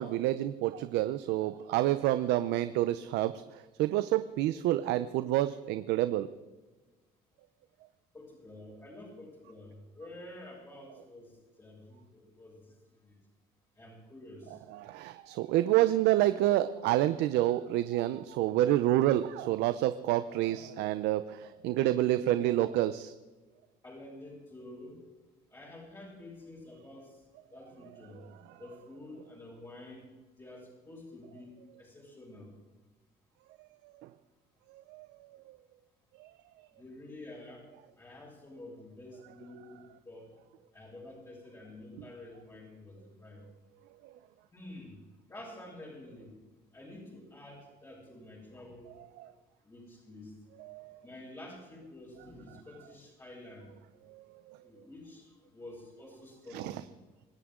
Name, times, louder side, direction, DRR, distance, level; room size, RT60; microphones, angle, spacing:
voice 1, 0.0-3.4 3.8-6.3 14.8-23.1 34.9-35.1 36.2-36.3 49.2-49.3 50.6-51.0 54.1-54.2 56.5-56.7, right 14 dB, 90° right, 12 dB, 0.7 m, -28 dB
voice 2, 8.1-11.3 11.6-12.7 13.0-13.2 13.8-14.6 23.8-25.0 25.5-27.2 27.5-28.2 28.6-30.1 30.4-31.5 31.8-32.5 36.7-37.7 38.0-40.3 40.7-43.4 44.5-45.0 45.3-46.3 46.7-48.9 49.6-50.3 51.0-53.7 54.6-56.8, left 1 dB, 20° left, -8 dB, 7.3 m, -49 dB
26.0 x 14.5 x 3.8 m, 1.2 s
cardioid pair, 110°, 17 cm